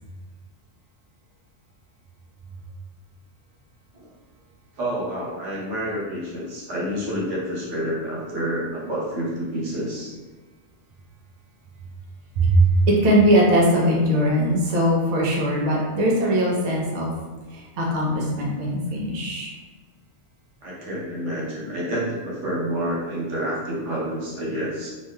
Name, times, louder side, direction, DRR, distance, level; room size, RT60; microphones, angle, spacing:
voice 1, 4.8-10.1 20.6-24.9, equal, 85° right, -5 dB, 1.2 m, -28 dB
voice 2, 12.4-17.1 17.5-19.5, right 1 dB, 45° right, -3 dB, 0.6 m, -20 dB
3.0 x 2.8 x 2.2 m, 1.3 s
omnidirectional pair, 1.2 m